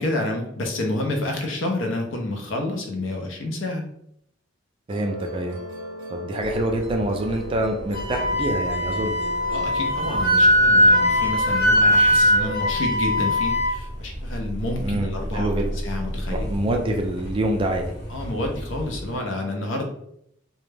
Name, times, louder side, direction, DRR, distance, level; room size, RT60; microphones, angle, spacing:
voice 1, 0.0-3.9 9.5-16.5 18.1-19.9, left 2 dB, 70° left, 2 dB, 0.5 m, -29 dB
voice 2, 4.9-5.6 6.1-9.2 14.8-15.7 16.3-17.9, right 1 dB, 25° right, 3 dB, 0.3 m, -26 dB
Musical instrument, 4.9-11.3, right 2 dB, 85° right, 0.5 m, -37 dB
sound 1, 6.4-19.2, equal, 20° left, 0.8 m, -34 dB
Wind instrument woodwind instrument, 7.9-13.7, equal, 85° left, 1.0 m, -20 dB
2.2 x 2.0 x 3.2 m, 0.73 s
head